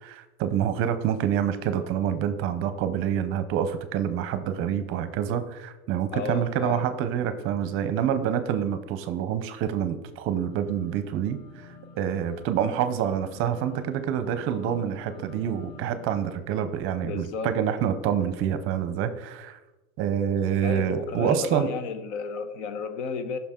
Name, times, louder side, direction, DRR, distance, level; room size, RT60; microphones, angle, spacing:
voice 1, 0.0-11.4 12.0-19.6 20.0-21.7, right 9 dB, 35° right, 11 dB, 0.7 m, -27 dB
voice 2, 6.1-6.9 17.0-17.5 20.6-23.4, left 5 dB, 70° left, 9 dB, 1.1 m, -33 dB
sound 1, 10.5-16.3, left 4 dB, 30° left, 1.4 m, -47 dB
14.5 x 5.9 x 3.7 m, 1.1 s
cardioid pair, 175°, 36 cm